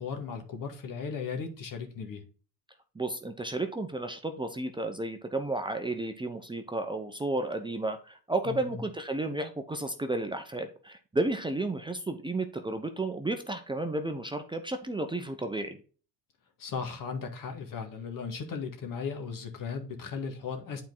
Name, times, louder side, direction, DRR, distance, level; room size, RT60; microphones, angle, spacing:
voice 1, 0.0-2.2 8.5-8.8 16.6-20.8, left 5 dB, 50° left, 1.9 m, -36 dB
voice 2, 2.9-15.8, right 2 dB, 10° right, 0.8 m, -32 dB
8.4 x 4.5 x 3.9 m
supercardioid pair, 90°, 42 cm